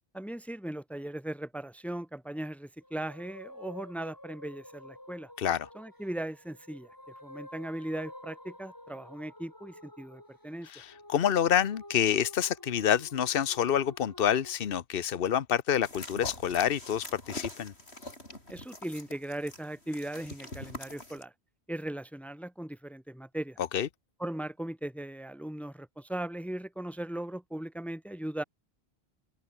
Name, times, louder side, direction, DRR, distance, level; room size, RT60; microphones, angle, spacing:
voice 1, 0.1-5.3 5.7-6.9 7.2-10.7 18.5-21.3 21.7-23.6 24.2-28.4, right 1 dB, ahead, 1.7 m, -38 dB
sound 1, 2.8-14.6, left 1 dB, 20° left, 3.2 m, -50 dB
voice 2, 5.4-5.7 10.7-17.7 23.7-23.9, left 9 dB, 65° left, 1.1 m, -27 dB
sound 2, 15.8-21.2, left 1 dB, 85° left, 6.9 m, -44 dB
open air
omnidirectional pair, 1.1 m